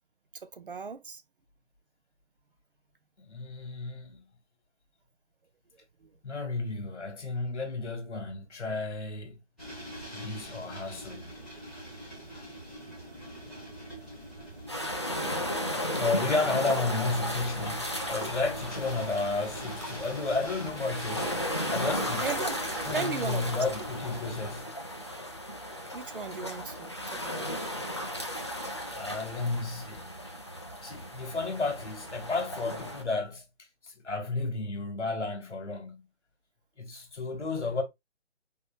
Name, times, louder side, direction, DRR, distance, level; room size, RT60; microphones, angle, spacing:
voice 1, 0.3-1.2 6.0-6.1 22.2-23.6 25.9-27.5, right 5 dB, 50° right, 0.5 m, -37 dB
voice 2, 3.3-4.2 6.2-9.4 10.1-11.3 15.9-21.4 21.7-22.3 22.8-24.6 28.9-30.1 30.8-33.4 33.8-36.0 36.8-37.8, left 3 dB, 70° left, 1.9 m, -32 dB
sound 1, 9.6-24.6, right 1 dB, ahead, 1.2 m, -44 dB
sound 2, 14.7-33.0, equal, 25° left, 0.4 m, -35 dB
4.1 x 3.6 x 2.4 m
figure-of-eight pair, 160°, 36 cm